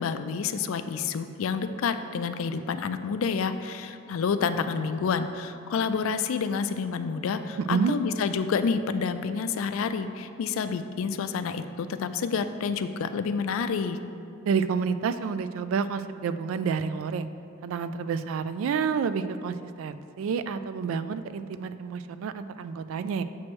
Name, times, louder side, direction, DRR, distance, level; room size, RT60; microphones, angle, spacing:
voice 1, 0.0-14.0, left 5 dB, 85° left, 10 dB, 0.4 m, -29 dB
voice 2, 7.6-7.9 14.5-17.3 17.6-23.2, right 6 dB, 85° right, 13 dB, 0.3 m, -29 dB
7.4 x 3.1 x 6.1 m, 2.5 s
head